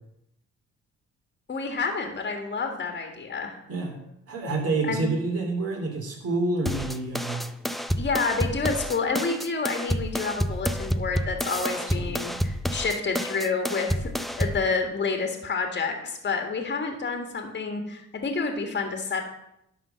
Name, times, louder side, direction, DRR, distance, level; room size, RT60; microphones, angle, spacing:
voice 1, 1.5-3.6 4.8-5.0 8.0-14.1 14.4-19.2, left 4 dB, 35° left, 4 dB, 1.6 m, -29 dB
voice 2, 4.3-7.5 11.7-12.1, right 3 dB, 50° right, 0 dB, 3.0 m, -28 dB
sound 1, 6.7-14.7, equal, ahead, 0.5 m, -29 dB
11.5 x 3.9 x 6.8 m, 0.80 s
cardioid pair, 90°, 30 cm